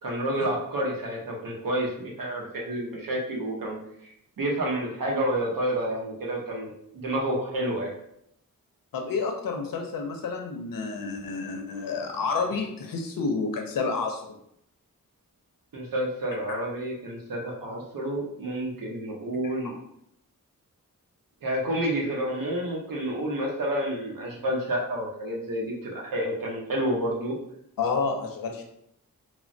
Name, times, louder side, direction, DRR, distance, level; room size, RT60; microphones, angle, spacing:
voice 1, 0.0-8.0 15.7-19.7 21.4-27.3, right 1 dB, 80° right, -1 dB, 0.8 m, -29 dB
voice 2, 8.9-14.4 19.4-19.5 27.8-28.6, left 4 dB, 85° left, 3 dB, 0.5 m, -29 dB
3.0 x 2.1 x 2.5 m, 0.74 s
wide cardioid pair, 80°, 33 cm